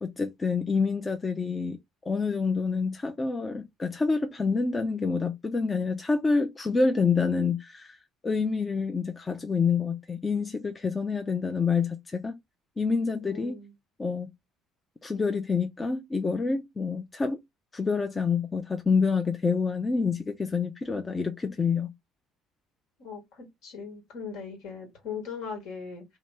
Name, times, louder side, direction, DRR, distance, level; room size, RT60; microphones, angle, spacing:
voice 1, 0.0-1.8 2.1-8.0 8.2-12.4 12.8-13.6 14.0-14.3 15.0-17.4 17.7-21.9, left 4 dB, 25° left, 0.5 m, -27 dB
voice 2, 13.2-13.7 23.0-26.0, left 6 dB, 65° left, 1.4 m, -39 dB
3.0 x 2.8 x 3.3 m
hypercardioid pair, 55°, 0 cm